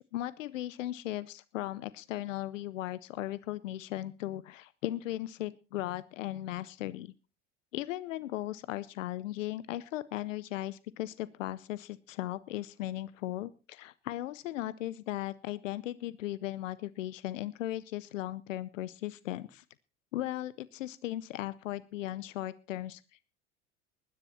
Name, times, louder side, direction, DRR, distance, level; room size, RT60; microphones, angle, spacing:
voice 1, 0.0-7.1 7.7-19.6 20.1-23.0, left 14 dB, 85° left, 17 dB, 0.7 m, -37 dB
20.0 x 10.0 x 4.2 m, 0.32 s
hypercardioid pair, 90°, 37 cm